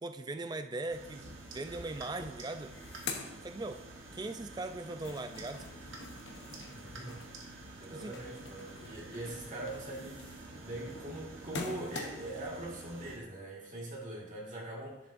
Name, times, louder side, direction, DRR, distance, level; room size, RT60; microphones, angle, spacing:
voice 1, 0.0-2.7 3.4-3.8 4.1-5.6 7.9-8.2, right 2 dB, 20° right, 8 dB, 0.4 m, -39 dB
sound 1, 0.9-13.2, right 2 dB, 85° right, 1.3 m, -49 dB
sound 2, 2.6-4.2 4.6-12.5, left 4 dB, 65° left, 0.9 m, -46 dB
voice 2, 6.7-7.2 7.8-15.1, right 1 dB, 40° right, -3 dB, 1.8 m, -42 dB
11.0 x 7.0 x 2.6 m, 0.93 s
head